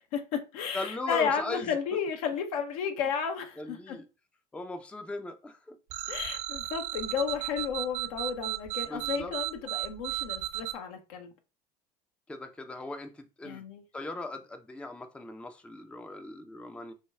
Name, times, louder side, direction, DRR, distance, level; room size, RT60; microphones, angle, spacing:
voice 1, 0.1-4.0 6.1-11.3 13.4-13.8, left 7 dB, 65° left, 0.7 m, -33 dB
voice 2, 0.7-1.8 3.6-4.1 4.5-5.8 8.8-9.3 12.3-13.6 13.9-16.9, left 2 dB, 5° left, 0.4 m, -39 dB
sound 1, 5.9-10.7, right 16 dB, 55° right, 0.6 m, -34 dB
6.3 x 2.2 x 2.3 m
figure-of-eight pair, 70°, 20 cm